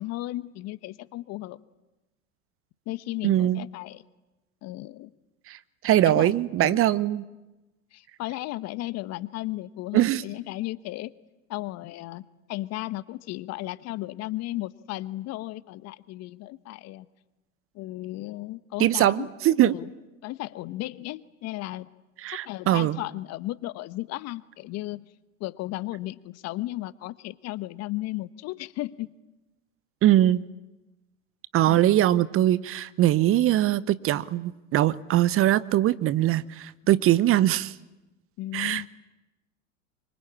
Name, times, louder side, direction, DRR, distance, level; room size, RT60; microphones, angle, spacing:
voice 1, 0.0-1.6 2.9-4.0 4.6-5.1 6.0-6.3 6.6-6.8 7.9-11.1 11.5-12.2 12.5-17.1 17.7-19.3 19.6-19.9 20.2-21.9 22.3-25.1 25.4-29.1 31.7-31.8 38.4-38.9, left 17 dB, 40° left, 17 dB, 1.0 m, -35 dB
voice 2, 3.2-3.6 5.5-5.6 5.8-7.2 9.9-10.2 18.8-19.8 22.2-23.0 30.0-30.4 31.5-37.7 38.5-38.9, right 13 dB, 35° right, 18 dB, 0.9 m, -22 dB
26.5 x 24.5 x 8.6 m, 1.0 s
hypercardioid pair, 90°, 40 cm